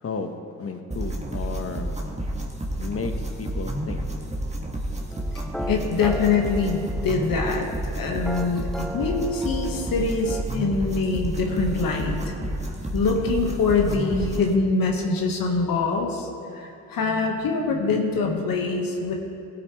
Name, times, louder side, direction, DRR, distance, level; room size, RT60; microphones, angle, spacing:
voice 1, 0.0-2.1 2.8-3.1 3.4-4.0, left 4 dB, 35° left, 7 dB, 1.2 m, -33 dB
sound 1, 0.9-14.5, right 1 dB, 15° right, 1.7 m, -30 dB
sound 2, 5.1-10.4, equal, ahead, 0.8 m, -37 dB
voice 2, 5.7-7.7 7.9-12.4 12.9-19.1, left 4 dB, 60° left, 2 dB, 1.6 m, -24 dB
17.5 x 8.4 x 3.2 m, 2.7 s
hypercardioid pair, 50°, 38 cm